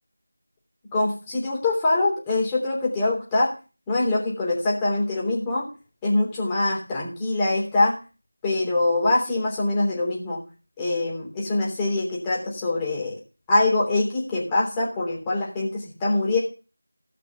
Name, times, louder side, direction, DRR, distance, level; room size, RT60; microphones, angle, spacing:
voice 1, 0.9-3.5 3.9-5.7 6.0-8.0 8.4-10.4 10.8-13.1 13.5-16.4, left 2 dB, 10° left, -5 dB, 3.3 m, -24 dB
17.0 x 5.9 x 5.9 m, 0.33 s
figure-of-eight pair, 170°, 0 cm